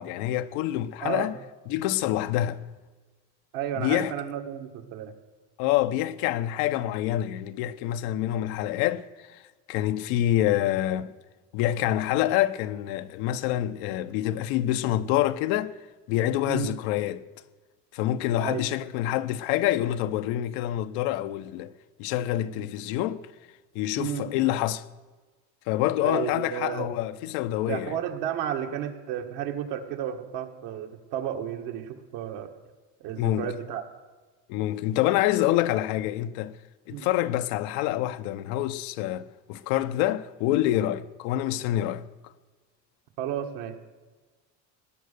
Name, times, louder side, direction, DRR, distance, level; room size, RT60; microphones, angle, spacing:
voice 1, 0.0-1.4 1.7-2.6 3.8-4.1 5.6-9.4 9.7-11.1 11.5-15.8 16.1-17.2 17.9-21.7 22.0-23.2 23.7-24.8 25.7-28.0 33.2-33.5 34.5-36.6 36.9-42.0, left 13 dB, 85° left, 0.8 m, -26 dB
voice 2, 1.0-1.3 3.5-5.1 16.5-16.8 18.4-18.6 24.0-24.3 26.0-26.9 27.6-32.5 33.0-33.8 36.9-37.1 43.2-43.8, right 10 dB, 75° right, 1.8 m, -32 dB
18.0 x 10.0 x 6.8 m
cardioid pair, 140°, 33 cm